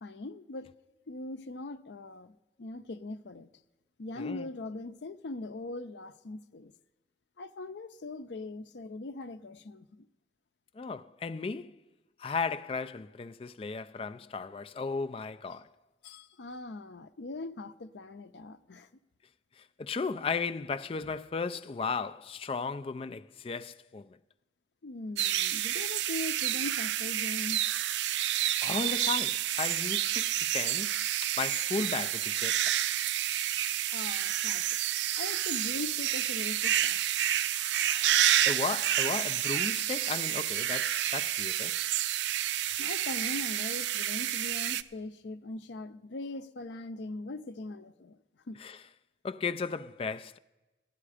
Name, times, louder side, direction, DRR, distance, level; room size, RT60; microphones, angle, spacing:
voice 1, 0.0-0.7 1.1-3.5 4.0-6.7 7.4-10.1 16.0-18.9 24.8-27.6 33.9-34.7 35.2-37.0 37.6-38.5 42.8-48.2 48.5-48.6, left 2 dB, 85° left, 0.6 m, -41 dB
voice 2, 4.2-4.5 10.8-11.8 12.2-15.7 19.8-24.1 28.6-30.3 30.5-30.9 31.2-32.6 38.5-41.7 48.6-48.8 49.2-50.4, left 4 dB, 30° left, 0.3 m, -35 dB
sound 1, 25.2-44.8, right 12 dB, 85° right, 0.4 m, -29 dB
15.0 x 10.5 x 4.9 m
head